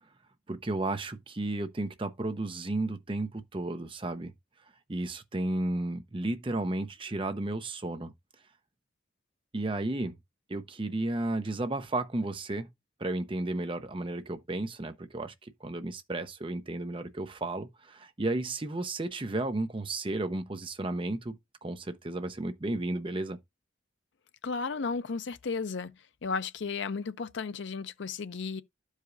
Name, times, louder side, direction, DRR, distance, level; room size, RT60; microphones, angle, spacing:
voice 1, 0.5-4.3 4.9-8.1 9.5-10.2 10.5-12.7 13.0-23.4, right 2 dB, 25° right, 0.6 m, -33 dB
voice 2, 24.4-25.9 26.2-28.6, left 4 dB, 60° left, 0.5 m, -34 dB
12.0 x 4.9 x 2.5 m
head